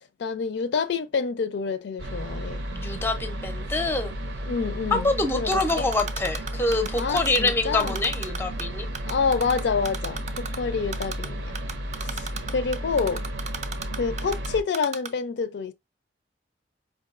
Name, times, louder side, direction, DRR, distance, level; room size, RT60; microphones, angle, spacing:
voice 1, 0.2-2.6 4.5-5.1 5.3-5.9 6.9-8.0 9.0-11.6 12.0-13.2 14.0-15.7, left 5 dB, 65° left, 0.4 m, -28 dB
sound 1, 2.0-14.6, equal, 75° right, 0.7 m, -33 dB
voice 2, 2.7-4.2 4.9-8.9, left 2 dB, 15° left, 0.5 m, -25 dB
Typing, 5.5-7.5 7.8-8.6 8.9-10.6 10.9-11.3 11.5-14.5 14.7-15.1, right 6 dB, 40° right, 0.4 m, -33 dB
4.6 x 2.6 x 2.4 m
head